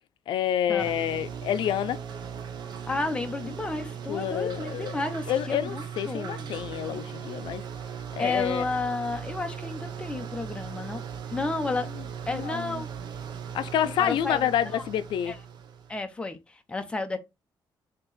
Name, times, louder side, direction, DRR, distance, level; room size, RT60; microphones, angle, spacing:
voice 1, 0.3-2.0 4.1-7.6 8.2-8.7 12.3-12.8 13.5-15.4, left 10 dB, 85° left, 0.4 m, -28 dB
sound 1, 0.8-16.0, right 7 dB, 65° right, 0.8 m, -38 dB
voice 2, 2.9-6.5 8.2-11.0 11.3-11.9 12.3-12.9 13.8-14.4 14.7-14.8 15.3-15.4 15.9-17.2, left 3 dB, 15° left, 0.6 m, -32 dB
4.4 x 2.9 x 4.0 m
cardioid pair, 160°, 8 cm